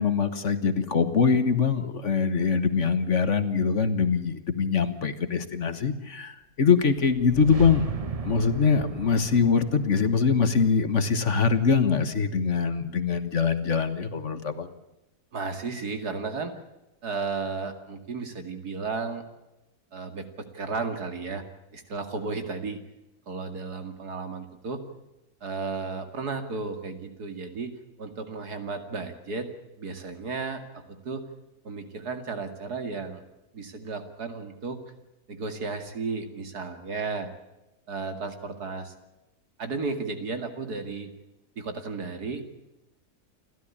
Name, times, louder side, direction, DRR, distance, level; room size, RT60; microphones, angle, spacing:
voice 1, 0.0-7.9 8.2-14.7, left 5 dB, 50° left, 11 dB, 1.7 m, -23 dB
sound 1, 7.0-11.9, right 5 dB, 30° right, 0.9 m, -37 dB
voice 2, 15.3-16.5 17.0-19.2 19.9-21.4 21.7-22.8 23.3-24.8 25.4-27.7 28.0-29.5 29.8-31.2 31.6-33.2 33.5-34.8 35.3-37.3 37.9-38.9 39.6-41.1 41.6-42.5, right 4 dB, 80° right, 7 dB, 2.9 m, -34 dB
29.0 x 13.0 x 8.7 m, 0.95 s
omnidirectional pair, 1.6 m